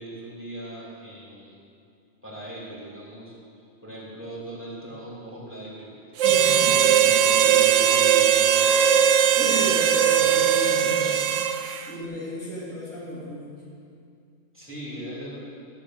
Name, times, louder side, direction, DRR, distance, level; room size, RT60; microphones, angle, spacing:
voice 1, 0.0-1.6 2.2-3.3 3.8-5.9 6.2-6.4 6.7-9.0 14.5-15.6, right 1 dB, 10° right, -6 dB, 3.6 m, -39 dB
voice 2, 6.2-7.6 9.4-11.2 11.9-13.5, equal, 75° left, -9 dB, 3.4 m, -33 dB
Harmonica, 6.2-11.8, right 9 dB, 75° right, 0.9 m, -19 dB
14.5 x 7.8 x 7.9 m, 2.4 s
omnidirectional pair, 1.3 m